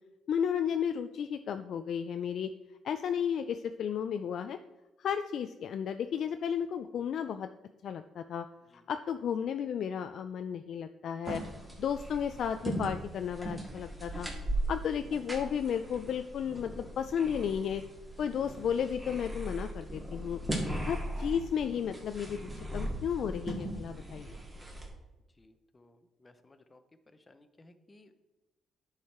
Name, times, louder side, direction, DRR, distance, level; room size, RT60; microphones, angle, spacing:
voice 1, 0.3-2.5 2.8-4.6 5.0-7.5 7.8-8.5 8.9-11.4 11.8-14.3 14.7-17.8 18.2-20.4 20.8-24.4, left 8 dB, 65° left, 8 dB, 0.3 m, -33 dB
sound 1, 11.3-24.9, right 1 dB, 15° right, 2.0 m, -38 dB
voice 2, 25.4-26.8 27.1-28.2, left 2 dB, 25° left, 8 dB, 0.8 m, -60 dB
10.0 x 4.8 x 4.3 m, 1.1 s
cardioid pair, 90°, 0 cm